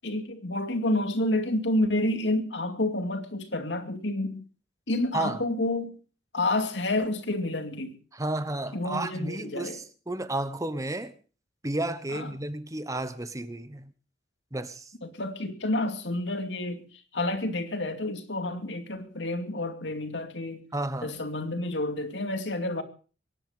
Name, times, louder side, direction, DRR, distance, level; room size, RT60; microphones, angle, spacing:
voice 1, 0.0-4.4 4.9-6.0 6.3-8.0 8.7-9.8 12.1-12.3 15.0-16.9 17.1-20.6 21.0-22.8, left 1 dB, 70° left, 2.4 m, -29 dB
voice 2, 8.1-11.1 11.6-13.9 14.5-14.9 20.7-21.1, right 2 dB, 20° right, 1.1 m, -32 dB
24.0 x 11.0 x 5.2 m
head